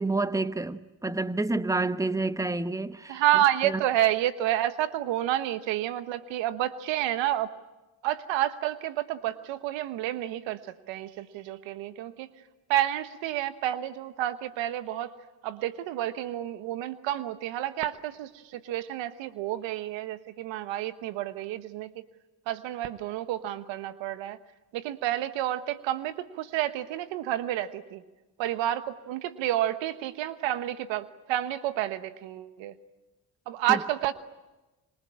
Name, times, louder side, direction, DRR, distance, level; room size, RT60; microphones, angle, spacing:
voice 1, 0.0-3.2 3.6-3.8 33.7-33.8, right 2 dB, 5° right, 1.1 m, -29 dB
voice 2, 3.1-7.5 8.0-12.3 12.7-15.1 15.4-21.9 22.5-24.4 24.7-28.0 28.4-32.7 33.5-34.1, right 13 dB, 85° right, 1.3 m, -29 dB
26.0 x 22.5 x 8.7 m
supercardioid pair, 65°, 44 cm